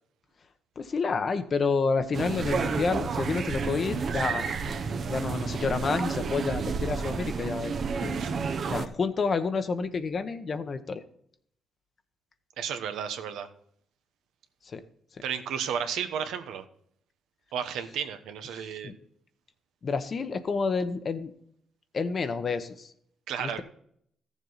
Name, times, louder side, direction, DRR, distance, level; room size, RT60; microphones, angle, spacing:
voice 1, 0.8-4.5 5.1-7.7 8.0-8.2 8.7-11.0 14.6-14.8 18.5-18.9 19.8-21.3 21.9-22.9 23.4-23.6, left 4 dB, 45° left, 9 dB, 0.9 m, -29 dB
sound 1, 2.1-8.9, right 5 dB, 50° right, 0.9 m, -30 dB
voice 2, 12.6-13.5 15.2-16.6 17.5-18.9 23.3-23.6, right 8 dB, 85° right, 8 dB, 1.0 m, -33 dB
14.0 x 7.2 x 4.1 m, 0.67 s
cardioid pair, 90°, 0 cm